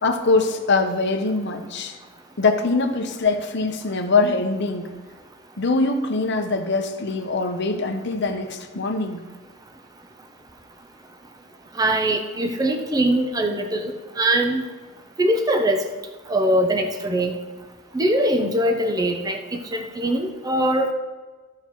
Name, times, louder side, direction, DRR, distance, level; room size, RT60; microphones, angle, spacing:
voice 1, 0.0-2.0 2.4-4.9 5.6-9.2, left 3 dB, 55° left, 6 dB, 0.8 m, -23 dB
voice 2, 11.7-14.6 15.2-15.9 16.3-17.3 17.9-20.9, right 1 dB, 20° right, 4 dB, 0.6 m, -22 dB
14.0 x 5.7 x 3.0 m, 1.3 s
head